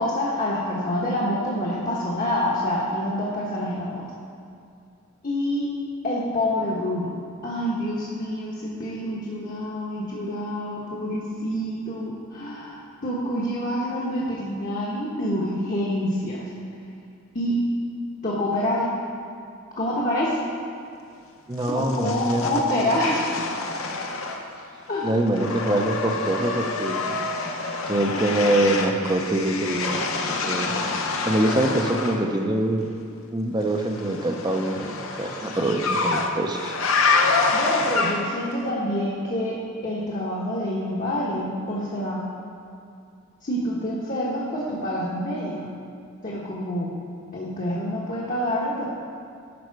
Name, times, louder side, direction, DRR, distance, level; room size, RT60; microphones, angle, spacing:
voice 1, 0.0-4.1 5.2-5.7 6.0-7.1 7.4-16.5 17.3-17.6 18.2-18.9 19.8-20.4 21.7-23.3 24.9-25.1 37.5-39.6 39.8-42.2 43.4-45.5 46.2-46.9 47.3-48.9, left 1 dB, 40° left, -5 dB, 1.1 m, -27 dB
voice 2, 21.5-22.4 22.8-22.9 25.0-27.2 27.9-30.7 31.2-32.9 33.3-36.8, right 1 dB, 20° right, 4 dB, 0.6 m, -24 dB
sound 1, 21.6-24.7 24.9-32.2 33.8-38.5, left 3 dB, 80° left, 0.8 m, -27 dB
11.5 x 5.5 x 4.7 m, 2.4 s
head